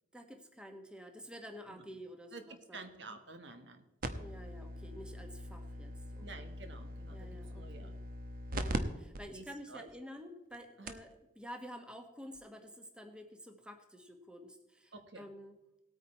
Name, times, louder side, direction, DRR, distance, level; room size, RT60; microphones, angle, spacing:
voice 1, 0.1-2.9 4.2-6.5 7.1-8.0 8.5-11.1 11.4-15.5, equal, 5° right, 4 dB, 1.2 m, -50 dB
voice 2, 1.7-2.0 2.3-3.9 6.2-8.0 9.3-9.9 10.8-11.0 14.9-15.3, right 3 dB, 65° right, 7 dB, 1.3 m, -51 dB
sound 1, 4.0-8.8 9.1-9.2 9.9-10.0 10.5-10.6 10.9-11.1 12.4-12.5, right 1 dB, 50° right, 0.9 m, -41 dB
18.0 x 8.9 x 4.4 m, 0.94 s
head